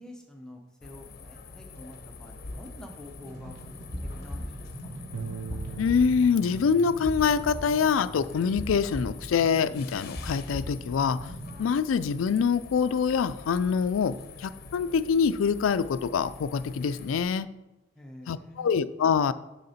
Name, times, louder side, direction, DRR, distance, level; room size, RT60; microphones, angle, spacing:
voice 1, 0.0-3.5 4.1-4.7 18.0-18.8, left 1 dB, 5° left, 1 dB, 0.7 m, -47 dB
sound 1, 0.8-17.2, left 4 dB, 50° left, 0.7 m, -46 dB
sound 2, 3.2-11.6, equal, 40° right, 1.6 m, -39 dB
Bass guitar, 5.1-11.4, right 6 dB, 80° right, 0.5 m, -44 dB
voice 2, 5.8-11.3 11.6-17.5 18.3-19.3, left 6 dB, 90° left, 15 dB, 0.4 m, -25 dB
6.6 x 6.3 x 4.2 m, 1.0 s
head